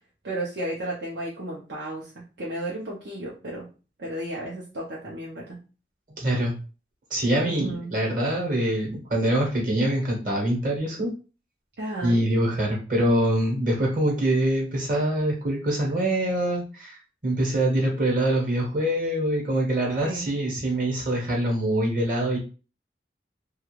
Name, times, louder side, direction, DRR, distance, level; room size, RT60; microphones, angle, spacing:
voice 1, 0.2-2.1 2.4-3.7 4.0-5.6 7.4-7.9 11.8-12.3 20.0-20.3, right 1 dB, 85° right, -5 dB, 0.7 m, -33 dB
voice 2, 6.2-6.5 7.1-11.1 12.0-17.0 17.2-22.4, right 1 dB, 50° right, -1 dB, 1.0 m, -24 dB
2.4 x 2.3 x 3.0 m, 0.35 s
head